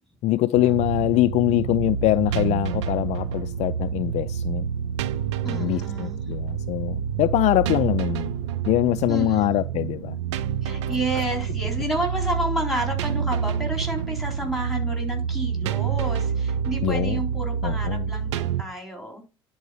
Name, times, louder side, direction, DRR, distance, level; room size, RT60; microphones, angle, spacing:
voice 1, 0.2-4.7 5.4-8.3 8.7-10.2 16.8-17.2 17.6-18.1, left 16 dB, 50° left, 0.4 m, -23 dB
sound 1, 0.5-18.6, right 7 dB, 70° right, 0.6 m, -28 dB
voice 2, 5.4-6.2 9.1-9.5 10.6-19.3, right 1 dB, ahead, 3.9 m, -30 dB
11.0 x 4.3 x 5.1 m
figure-of-eight pair, 65°, 15 cm